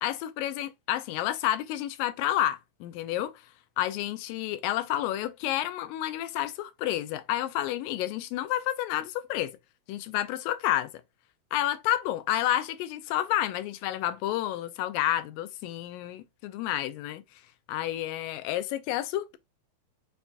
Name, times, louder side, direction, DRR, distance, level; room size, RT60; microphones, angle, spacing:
voice 1, 0.0-3.3 3.8-9.5 9.9-11.0 11.5-17.2 17.7-19.4, left 13 dB, 85° left, 2.3 m, -30 dB
6.0 x 2.6 x 3.3 m
omnidirectional pair, 4.0 m